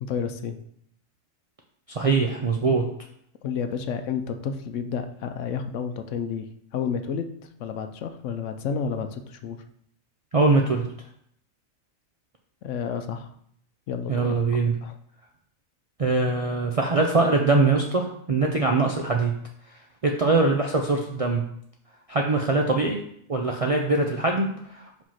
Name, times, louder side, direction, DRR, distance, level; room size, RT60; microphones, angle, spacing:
voice 1, 0.0-0.6 3.4-7.3 7.6-9.6 12.6-13.3 13.9-14.4 14.8-14.9, left 6 dB, 70° left, 8 dB, 0.9 m, -30 dB
voice 2, 1.9-2.8 10.3-10.8 14.1-14.7 16.0-19.3 20.0-21.4 22.1-23.0 23.3-25.0, right 3 dB, 65° right, 1 dB, 0.3 m, -22 dB
5.1 x 3.7 x 5.6 m, 0.69 s
omnidirectional pair, 1.4 m